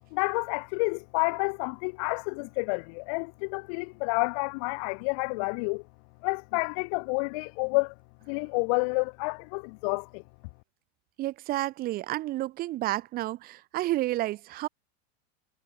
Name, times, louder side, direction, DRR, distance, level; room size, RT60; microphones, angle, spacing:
voice 1, 0.1-5.8 6.2-7.9 8.3-10.2, left 35 dB, 30° left, 0.6 m, -29 dB
voice 2, 11.2-14.7, right 16 dB, 25° right, 2.2 m, -30 dB
supercardioid pair, 180°, 34 cm